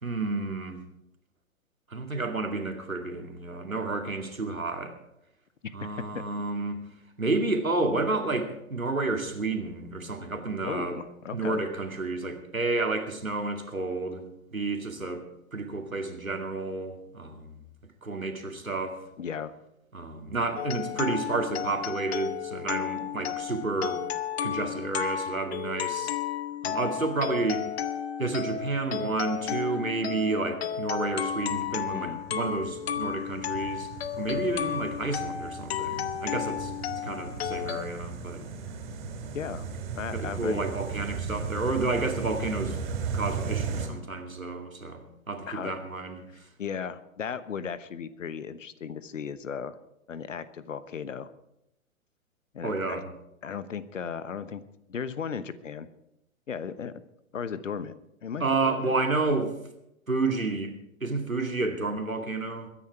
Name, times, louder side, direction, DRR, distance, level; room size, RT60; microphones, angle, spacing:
voice 1, 0.0-0.8 1.9-4.9 5.7-6.8 7.2-11.0 11.3-14.2 14.5-15.2 15.5-17.6 18.0-19.0 19.9-24.0 24.4-26.1 26.6-27.7 28.2-33.9 34.2-36.7 37.0-38.4 40.1-42.8 43.1-46.2 52.6-53.1 58.4-59.5 60.1-60.7 61.0-62.7, right 3 dB, 85° right, 4 dB, 2.5 m, -30 dB
voice 2, 5.6-6.2 10.6-11.6 19.2-19.5 31.9-32.3 39.3-39.7 39.9-40.6 45.5-45.7 46.6-49.8 50.1-51.3 52.5-53.0 53.4-54.6 54.9-55.9 56.5-57.0 57.3-57.9 58.2-58.9, left 6 dB, 70° left, 15 dB, 1.1 m, -36 dB
sound 1, 20.6-37.8, left 9 dB, 50° left, 1.0 m, -33 dB
sound 2, 31.0-43.9, right 5 dB, 45° right, 3.4 m, -37 dB
22.0 x 10.0 x 4.7 m, 0.83 s
figure-of-eight pair, 110°, 40 cm